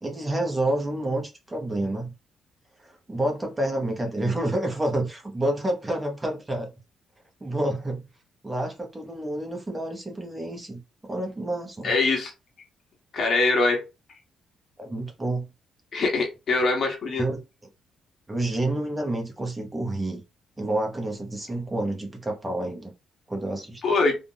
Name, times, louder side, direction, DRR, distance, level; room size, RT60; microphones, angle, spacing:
voice 1, 0.0-2.1 2.8-6.7 7.4-8.1 8.4-11.9 14.8-15.5 17.2-17.4 18.3-20.2 20.6-22.9 23.3-23.8, right 1 dB, 20° right, 1.1 m, -29 dB
voice 2, 11.8-12.3 13.1-13.8 15.9-17.3 23.8-24.2, left 3 dB, 55° left, 1.4 m, -23 dB
3.7 x 2.5 x 2.2 m
cardioid pair, 90°, 0 cm